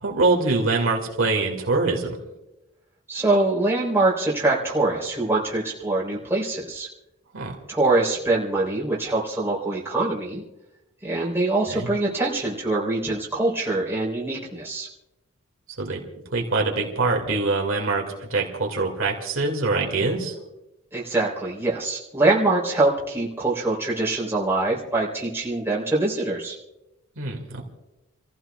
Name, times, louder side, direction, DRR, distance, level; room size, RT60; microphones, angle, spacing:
voice 1, 0.0-2.2 7.3-7.6 11.7-11.9 15.8-16.0 16.3-20.4 27.2-27.6, right 3 dB, 70° right, 0 dB, 2.3 m, -24 dB
voice 2, 3.1-6.9 7.7-10.4 11.0-14.9 20.9-26.6, right 2 dB, 10° right, -5 dB, 3.8 m, -24 dB
30.0 x 15.0 x 2.4 m, 0.98 s
head